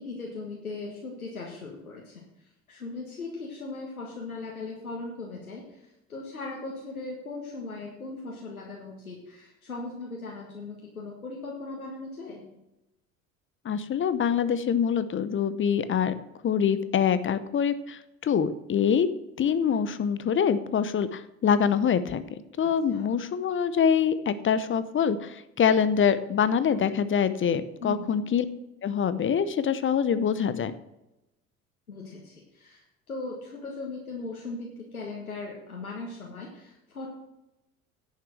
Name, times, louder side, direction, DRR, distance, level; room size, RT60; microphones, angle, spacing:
voice 1, 0.0-2.2 2.7-12.4 22.9-23.2 27.8-28.2 31.9-37.1, left 3 dB, 90° left, -1 dB, 1.7 m, -38 dB
voice 2, 13.6-16.1 16.4-19.1 19.4-22.2 22.6-28.5 28.8-30.7, left 7 dB, 30° left, 14 dB, 0.8 m, -25 dB
10.5 x 6.7 x 6.3 m, 0.91 s
figure-of-eight pair, 65°, 42 cm